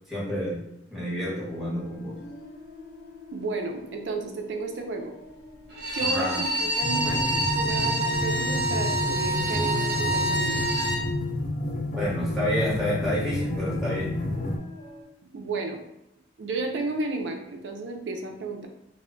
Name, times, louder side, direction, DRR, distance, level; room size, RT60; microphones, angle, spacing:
voice 1, 0.1-0.6 0.9-2.2 6.0-6.4 11.9-14.2, equal, ahead, -8 dB, 1.0 m, -29 dB
sound 1, 1.2-15.0, left 3 dB, 80° left, 0.7 m, -42 dB
voice 2, 3.3-5.1 5.9-10.6 15.3-15.8 16.4-18.7, right 3 dB, 80° right, 3 dB, 0.5 m, -32 dB
Bowed string instrument, 5.7-11.0, right 1 dB, 60° right, 0.9 m, -27 dB
sound 2, 6.8-14.6, left 1 dB, 50° left, 0.4 m, -30 dB
2.1 x 2.1 x 3.7 m, 0.85 s
head